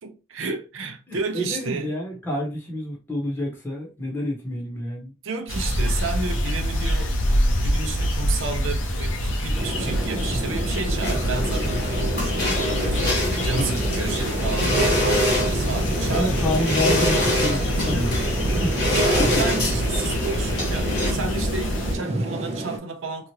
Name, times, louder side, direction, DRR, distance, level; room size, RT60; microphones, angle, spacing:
voice 1, 0.0-1.9 5.2-7.1 7.6-14.7 15.0-16.4 18.9-23.3, right 4 dB, 75° right, 0.6 m, -32 dB
voice 2, 1.1-5.1 13.5-13.9 16.1-18.7 19.2-19.3, left 1 dB, 10° left, 0.9 m, -28 dB
sound 1, 5.5-21.9, equal, 70° left, 0.8 m, -26 dB
sound 2, 9.5-22.8, right 2 dB, 30° right, 0.4 m, -30 dB
sound 3, 11.0-21.1, left 1 dB, 50° left, 1.1 m, -26 dB
3.0 x 2.4 x 2.8 m
head